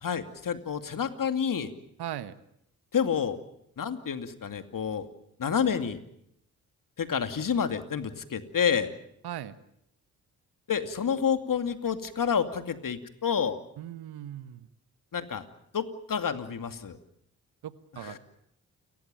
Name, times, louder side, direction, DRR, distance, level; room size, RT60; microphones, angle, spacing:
voice 1, 0.0-1.7 2.9-3.4 3.8-5.1 5.4-6.0 7.0-8.9 10.7-13.6 15.1-15.4 15.7-17.0 18.0-18.2, left 7 dB, 50° left, 9 dB, 2.5 m, -29 dB
voice 2, 2.0-2.3 9.2-9.5 13.8-14.7 17.6-18.2, right 11 dB, 65° right, 14 dB, 1.4 m, -38 dB
29.5 x 15.0 x 9.0 m, 0.76 s
hypercardioid pair, 40°, 41 cm